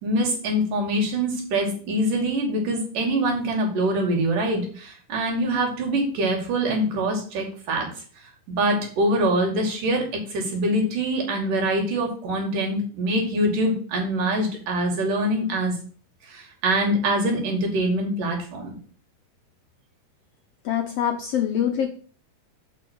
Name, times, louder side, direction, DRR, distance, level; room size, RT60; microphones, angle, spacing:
voice 1, 0.0-7.9 8.5-10.0 10.3-15.7 16.3-18.7, right 1 dB, 80° right, 1 dB, 4.0 m, -24 dB
voice 2, 20.6-21.9, left 9 dB, 75° left, 5 dB, 1.5 m, -24 dB
7.0 x 6.2 x 6.1 m, 0.43 s
omnidirectional pair, 3.7 m